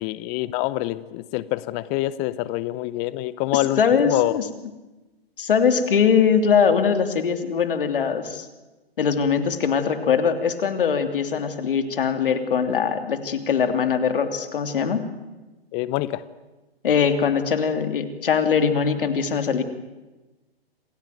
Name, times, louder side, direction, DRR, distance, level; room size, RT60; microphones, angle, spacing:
voice 1, 0.0-4.3 15.7-16.2, left 17 dB, 20° left, 17 dB, 0.7 m, -26 dB
voice 2, 3.5-4.4 5.4-8.5 9.0-15.0 16.8-19.6, left 6 dB, 60° left, 9 dB, 3.0 m, -21 dB
27.5 x 16.5 x 9.4 m, 1.1 s
figure-of-eight pair, 130°, 30 cm